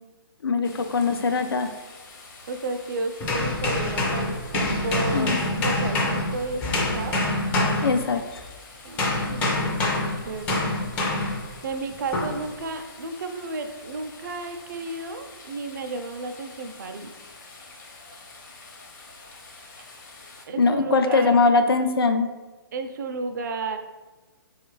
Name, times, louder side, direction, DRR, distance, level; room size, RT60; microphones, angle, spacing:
voice 1, 0.4-1.7 5.1-5.4 7.8-8.2 20.6-22.3, left 4 dB, 75° left, 8 dB, 0.4 m, -21 dB
sound 1, 0.6-20.5, left 3 dB, 45° left, 0.7 m, -47 dB
voice 2, 2.5-7.2 8.8-10.6 11.6-17.1 20.5-21.4 22.7-23.8, right 3 dB, 50° right, 7 dB, 0.4 m, -33 dB
sound 2, 3.2-8.5 9.0-11.5 12.1-12.4, left 2 dB, 15° left, 0.4 m, -26 dB
4.2 x 2.4 x 3.0 m, 1.2 s
figure-of-eight pair, 135°, 12 cm